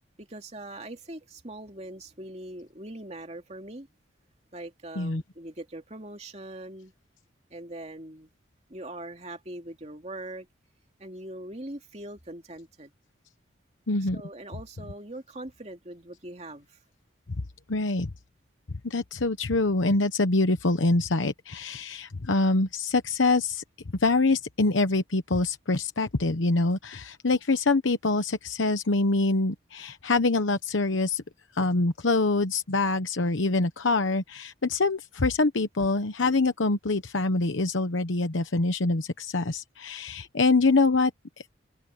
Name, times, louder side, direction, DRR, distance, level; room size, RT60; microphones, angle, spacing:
voice 1, 0.2-3.9 4.5-6.9 7.5-8.3 8.7-10.5 11.0-12.9 14.0-16.8, right 1 dB, 35° right, 2.7 m, -41 dB
voice 2, 13.9-14.2 17.7-18.1 18.8-23.6 24.0-31.2 31.5-41.1, left 3 dB, 80° left, 1.0 m, -25 dB
open air
head